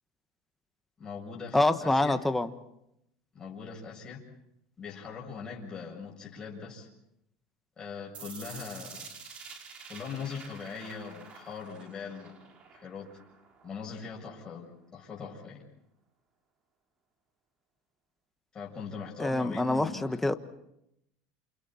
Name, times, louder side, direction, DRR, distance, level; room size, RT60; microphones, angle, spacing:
voice 1, 1.0-2.2 3.3-4.3 4.8-6.9 7.8-9.1 9.9-12.4 12.7-13.1 13.6-15.6 18.5-20.3, left 5 dB, 25° left, -2 dB, 7.0 m, -41 dB
voice 2, 1.5-2.5 19.2-20.3, left 2 dB, 5° left, 9 dB, 1.3 m, -26 dB
sound 1, 8.1-14.1, right 5 dB, 40° right, 3.9 m, -48 dB
29.0 x 28.0 x 4.5 m, 0.81 s
supercardioid pair, 115°, 3 cm